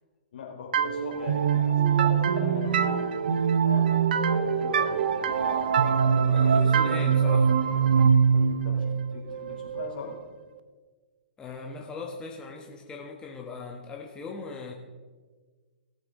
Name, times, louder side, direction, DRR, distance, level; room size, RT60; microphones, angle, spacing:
voice 1, 0.3-3.1 3.6-7.4 8.3-10.2, left 5 dB, 60° left, 0 dB, 3.4 m, -40 dB
sound 1, 0.7-10.3, right 6 dB, 60° right, 0.7 m, -23 dB
voice 2, 6.3-7.5 11.4-14.7, left 4 dB, 15° left, 0 dB, 1.2 m, -39 dB
17.5 x 7.6 x 3.8 m, 1.4 s
figure-of-eight pair, 120°, 6 cm